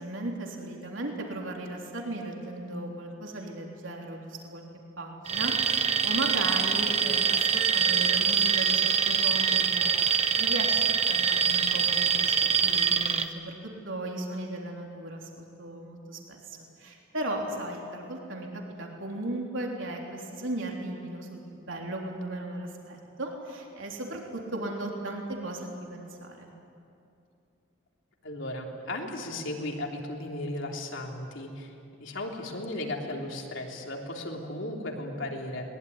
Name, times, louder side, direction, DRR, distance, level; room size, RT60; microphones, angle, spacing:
voice 1, 0.0-4.6 5.0-13.5 13.8-26.5, right 1 dB, 75° right, 0 dB, 3.5 m, -36 dB
Alarm, 5.3-13.3, right 6 dB, 30° right, 1.0 m, -24 dB
voice 2, 28.2-35.6, left 1 dB, 70° left, 0 dB, 3.4 m, -36 dB
22.0 x 20.5 x 9.8 m, 2.6 s
head